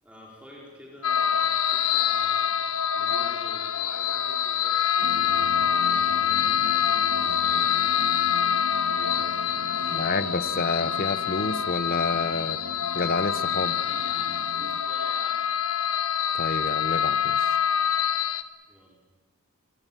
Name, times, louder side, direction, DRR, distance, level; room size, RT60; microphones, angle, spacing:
voice 1, 0.0-6.7 7.2-8.0 8.9-9.4 13.6-15.5 18.7-19.0, equal, 5° right, -3 dB, 4.6 m, -48 dB
sound 1, 1.0-18.4, left 9 dB, 65° left, 1.2 m, -25 dB
sound 2, 5.0-14.8, right 1 dB, 80° right, 1.4 m, -41 dB
voice 2, 9.9-12.6 12.9-13.7 16.3-17.6, left 3 dB, 40° left, 13 dB, 0.9 m, -29 dB
28.5 x 21.0 x 7.4 m, 1.3 s
head